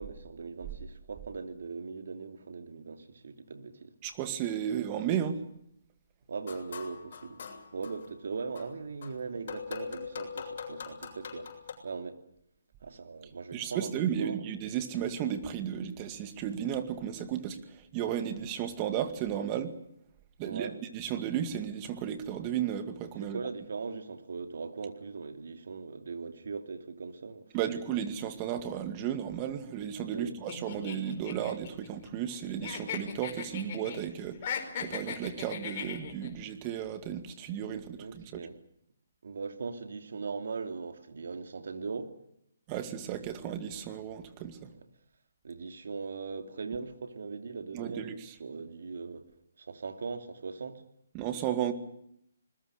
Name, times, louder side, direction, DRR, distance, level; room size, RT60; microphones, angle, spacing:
voice 1, 0.0-3.9 6.3-7.4 7.7-11.5 11.8-12.2 12.8-14.4 20.4-20.8 21.1-21.2 23.2-27.8 30.1-30.4 38.0-38.6 39.2-42.1 44.6-44.9 45.4-49.3 49.6-50.8, right 4 dB, 70° right, 2.9 m, -40 dB
voice 2, 4.0-5.4 13.5-19.8 20.4-23.4 27.5-38.5 42.7-44.7 47.7-48.1 51.1-51.7, right 9 dB, 25° right, 2.2 m, -34 dB
sound 1, 6.4-8.1 8.6-11.7, left 6 dB, 55° left, 7.7 m, -42 dB
sound 2, 30.5-32.4 32.6-34.0 34.3-36.3, left 7 dB, 40° left, 4.9 m, -38 dB
27.0 x 20.5 x 6.6 m
hypercardioid pair, 150°, 0 cm